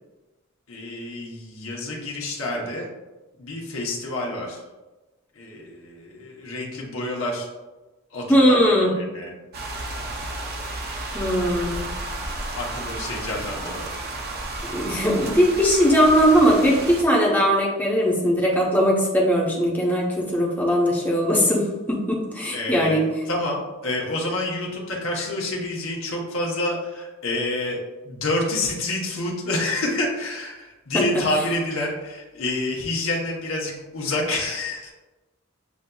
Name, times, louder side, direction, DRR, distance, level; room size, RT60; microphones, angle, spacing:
voice 1, 0.7-2.9 3.4-4.6 5.3-7.5 8.1-9.3 12.5-13.9 22.5-27.8 28.0-34.9, left 2 dB, 65° left, -3 dB, 0.9 m, -28 dB
voice 2, 8.3-8.9 11.1-11.9 14.7-23.0 30.9-31.0, equal, 10° left, -3 dB, 0.7 m, -19 dB
sound 1, 9.5-17.0, right 2 dB, 45° right, 0.5 m, -32 dB
7.0 x 2.6 x 2.3 m, 1.1 s
head